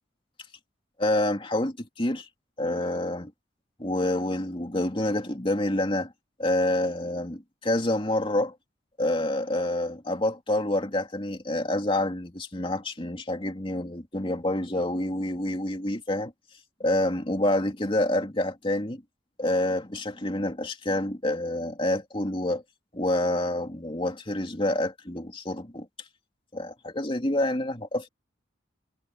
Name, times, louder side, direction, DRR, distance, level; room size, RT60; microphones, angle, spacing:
voice 1, 1.0-2.3 2.6-3.3 3.8-6.1 6.4-8.5 9.0-16.3 16.8-19.0 19.4-22.6 22.9-25.9 26.5-28.1, left 1 dB, 30° left, 2.8 m, -27 dB
head